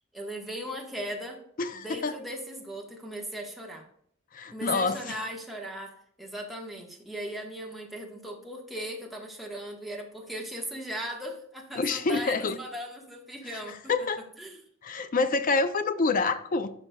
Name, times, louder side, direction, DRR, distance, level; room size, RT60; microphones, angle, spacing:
voice 1, 0.1-1.4 1.7-3.8 4.5-13.8 14.4-14.6, equal, ahead, 1.3 m, -38 dB
voice 2, 1.6-2.2 4.3-5.3 11.8-12.6 13.4-14.2 14.8-16.7, left 3 dB, 45° left, 0.5 m, -27 dB
12.0 x 5.3 x 2.3 m
head